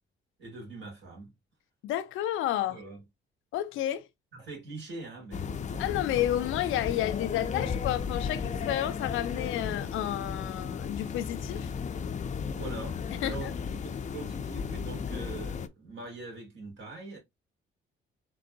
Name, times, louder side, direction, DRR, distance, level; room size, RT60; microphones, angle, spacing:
voice 1, 0.4-1.3 2.7-3.0 4.3-6.2 12.5-13.0 13.2-17.2, right 3 dB, 70° right, 2.9 m, -43 dB
voice 2, 1.8-2.8 3.5-4.1 5.8-11.7 13.2-13.5, left 12 dB, 85° left, 0.5 m, -31 dB
sound 1, 5.3-15.7, left 6 dB, 35° left, 0.4 m, -34 dB
3.9 x 3.5 x 2.5 m
cardioid pair, 90°, 20 cm